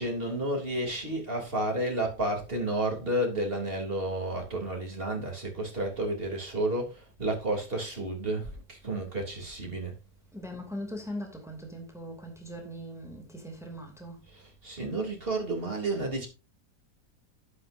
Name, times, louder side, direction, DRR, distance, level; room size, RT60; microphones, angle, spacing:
voice 1, 0.0-9.9 14.3-16.3, right 1 dB, 35° right, 3.4 m, -31 dB
voice 2, 10.3-14.2, equal, ahead, 2.8 m, -40 dB
12.0 x 10.0 x 2.7 m
omnidirectional pair, 1.7 m